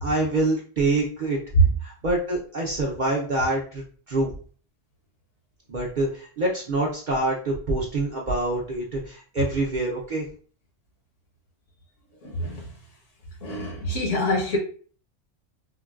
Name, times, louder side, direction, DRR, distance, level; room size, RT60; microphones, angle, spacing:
voice 1, 0.0-1.4 1.8-4.3 5.7-10.3, right 2 dB, 55° right, 0.6 m, -26 dB
voice 2, 12.2-12.7 13.4-14.6, right 2 dB, 70° left, 1.3 m, -23 dB
3.8 x 2.1 x 2.3 m
omnidirectional pair, 1.3 m